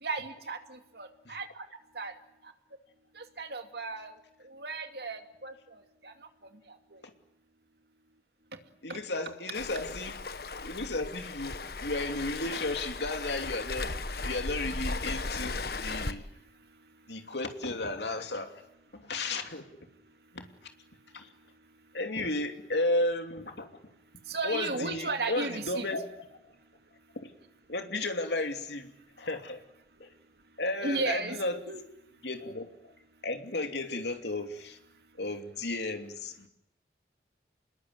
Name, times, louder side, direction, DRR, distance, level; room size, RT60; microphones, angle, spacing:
voice 1, 0.0-1.7 2.0-2.1 3.2-4.1 4.4-6.1 8.9-9.0 24.3-25.9 30.8-31.4 31.7-31.8, right 3 dB, 70° right, 6 dB, 2.5 m, -35 dB
voice 2, 8.8-10.2 10.6-16.2 17.1-18.6 18.9-19.7 20.3-20.5 21.1-21.3 21.9-23.7 24.4-26.1 27.1-27.3 27.7-28.9 29.2-29.6 30.0-30.1 30.6-31.6 32.2-32.9 33.2-34.8 35.2-36.5, left 2 dB, 80° left, 5 dB, 2.9 m, -33 dB
Waves surf, 9.5-16.1, left 3 dB, 60° left, 1.3 m, -36 dB
27.5 x 21.0 x 9.5 m, 0.82 s
head